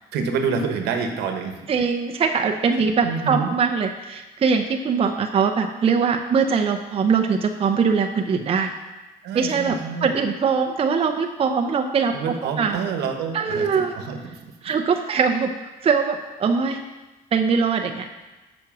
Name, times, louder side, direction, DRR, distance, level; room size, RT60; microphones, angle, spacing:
voice 1, 0.1-1.6 3.0-3.5 9.2-10.1 12.1-14.5, right 5 dB, 80° right, 5 dB, 1.2 m, -27 dB
voice 2, 1.7-8.7 9.3-12.8 13.3-13.9 14.6-15.5 15.8-16.8 17.3-18.1, right 5 dB, 35° right, 4 dB, 0.7 m, -22 dB
7.4 x 6.3 x 6.1 m, 1.1 s
cardioid pair, 110°, 17 cm